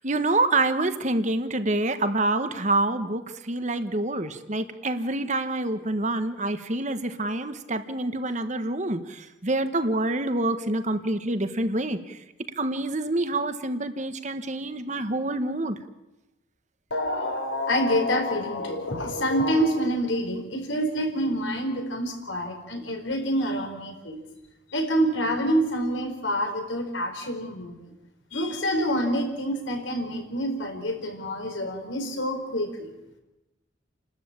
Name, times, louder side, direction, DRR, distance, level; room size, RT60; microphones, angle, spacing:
voice 1, 0.0-12.2 12.6-15.8, right 2 dB, 40° right, 9 dB, 1.2 m, -27 dB
voice 2, 16.9-24.2 24.7-27.9 28.3-32.9, equal, 80° left, 4 dB, 4.4 m, -27 dB
29.5 x 13.0 x 8.8 m, 0.99 s
head